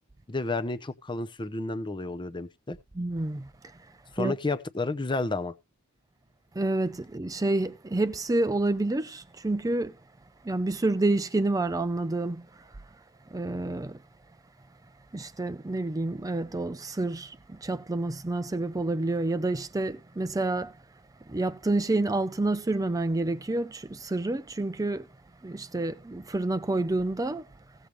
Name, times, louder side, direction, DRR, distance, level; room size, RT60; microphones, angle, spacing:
voice 1, 0.3-2.8 4.1-5.5, left 3 dB, 20° left, 0.7 m, -31 dB
voice 2, 2.9-3.8 4.2-4.4 6.5-10.0 10.4-12.7 13.3-14.0 15.1-20.8 21.3-25.1 25.4-27.5, right 2 dB, 15° right, 0.5 m, -29 dB
16.5 x 6.8 x 3.1 m
head